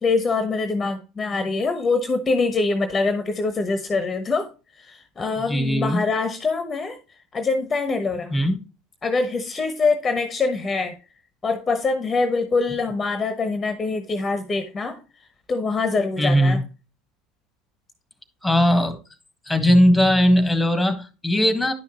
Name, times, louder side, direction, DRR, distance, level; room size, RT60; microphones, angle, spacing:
voice 1, 0.0-4.5 4.8-7.0 7.3-8.4 9.0-11.0 11.4-15.0 15.5-16.6, left 4 dB, 25° left, 1.1 m, -24 dB
voice 2, 5.5-6.0 8.3-8.6 16.2-16.6 18.4-19.0 19.5-21.7, equal, 10° left, 1.6 m, -19 dB
10.5 x 5.8 x 3.0 m
hypercardioid pair, 70°, 0 cm